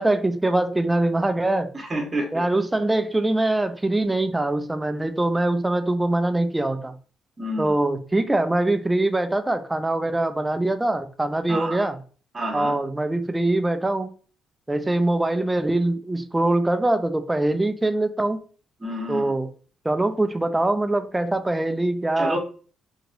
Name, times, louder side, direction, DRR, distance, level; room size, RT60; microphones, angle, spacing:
voice 1, 0.0-1.7 2.3-6.9 7.6-12.0 12.5-14.1 14.7-18.4 19.1-19.5 19.8-22.4, right 2 dB, 15° right, 0.4 m, -23 dB
voice 2, 1.7-2.4 7.4-7.8 11.5-11.9 12.3-12.8 18.8-19.3 22.2-22.4, right 1 dB, 30° right, 1.1 m, -29 dB
2.9 x 2.9 x 2.5 m
cardioid pair, 90°, 0 cm